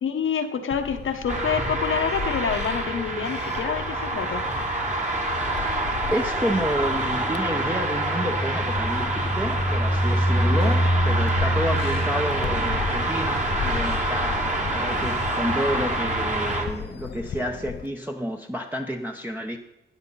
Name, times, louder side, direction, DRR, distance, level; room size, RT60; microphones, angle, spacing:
voice 1, 0.0-4.4 14.9-15.1, left 7 dB, 85° left, 6 dB, 1.3 m, -27 dB
sound 1, 0.7-17.9, left 8 dB, 55° left, 0.5 m, -36 dB
sound 2, 1.3-16.7, right 1 dB, 35° right, 2.1 m, -25 dB
voice 2, 5.8-19.6, equal, 10° right, 2 dB, 0.9 m, -30 dB
13.0 x 9.6 x 4.1 m, 0.94 s
wide cardioid pair, 95°, 20 cm